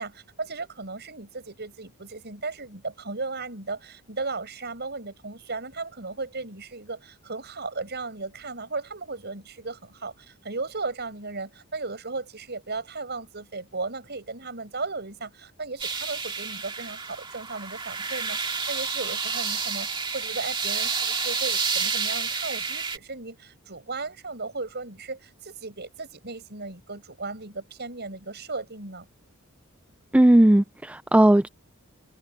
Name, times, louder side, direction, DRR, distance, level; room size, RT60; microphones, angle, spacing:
voice 1, 0.0-29.1, right 3 dB, 50° right, 7.1 m, -36 dB
sound 1, 15.8-23.0, right 5 dB, 25° right, 2.0 m, -29 dB
voice 2, 30.1-31.5, right 1 dB, 5° right, 0.3 m, -17 dB
head